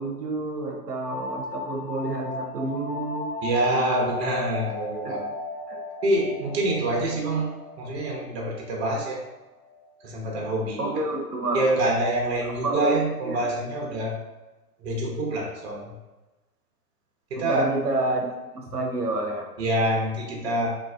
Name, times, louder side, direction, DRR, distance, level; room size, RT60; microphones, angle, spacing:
voice 1, 0.0-3.3 5.0-5.2 5.7-5.8 10.8-11.7 12.4-13.4 17.4-18.3 18.5-19.5, right 2 dB, 75° right, 0 dB, 0.7 m, -29 dB
sound 1, 1.0-10.4, left 3 dB, 10° left, 0.4 m, -37 dB
voice 2, 3.4-5.2 6.0-9.2 10.0-10.9 11.5-14.2 14.8-15.9 17.3-17.7 19.6-20.8, right 1 dB, 40° right, -1 dB, 0.8 m, -26 dB
3.2 x 2.4 x 2.3 m, 1.1 s
figure-of-eight pair, 125°, 48 cm